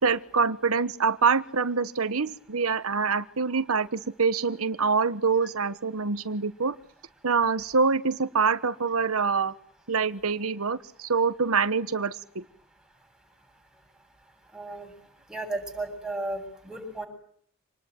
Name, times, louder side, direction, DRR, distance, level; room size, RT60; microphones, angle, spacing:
voice 1, 0.0-6.8 7.2-9.5 9.9-12.4, right 5 dB, 85° right, 13 dB, 1.2 m, -25 dB
voice 2, 14.5-14.9 15.3-17.1, right 2 dB, 5° right, 3 dB, 7.8 m, -34 dB
28.0 x 20.0 x 9.3 m, 0.63 s
head